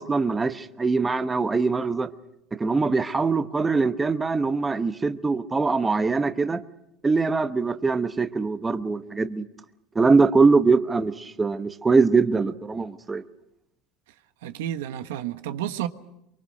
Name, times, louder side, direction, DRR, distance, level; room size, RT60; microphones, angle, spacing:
voice 1, 0.0-2.1 2.6-6.6 7.0-9.4 9.9-13.2, right 4 dB, 15° right, 1.0 m, -22 dB
voice 2, 14.4-15.9, right 11 dB, 90° right, 1.3 m, -31 dB
24.0 x 23.5 x 6.5 m
supercardioid pair, 135°, 0 cm